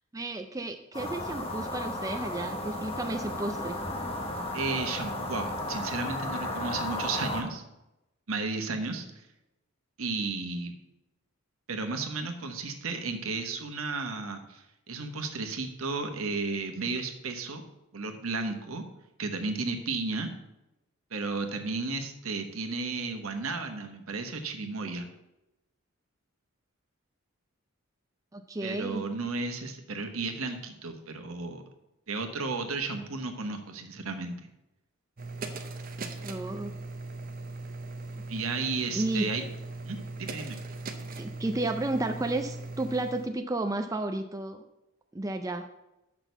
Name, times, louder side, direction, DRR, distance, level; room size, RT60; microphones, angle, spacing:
voice 1, 0.1-3.8 28.3-29.0 36.2-36.7 38.9-39.3 41.2-44.6 45.1-45.6, right 2 dB, 15° right, 6 dB, 0.4 m, -32 dB
sound 1, 0.9-7.4, left 1 dB, 25° left, 1.0 m, -34 dB
voice 2, 4.5-7.6 8.3-9.3 10.0-10.7 11.7-17.6 17.9-18.8 19.2-20.3 21.1-25.1 28.6-31.6 32.1-34.4 38.3-39.4 39.8-40.6, right 3 dB, 80° right, 5 dB, 1.2 m, -33 dB
sound 2, 35.2-43.3, right 3 dB, 40° right, 0.7 m, -39 dB
6.2 x 6.0 x 6.8 m, 0.92 s
head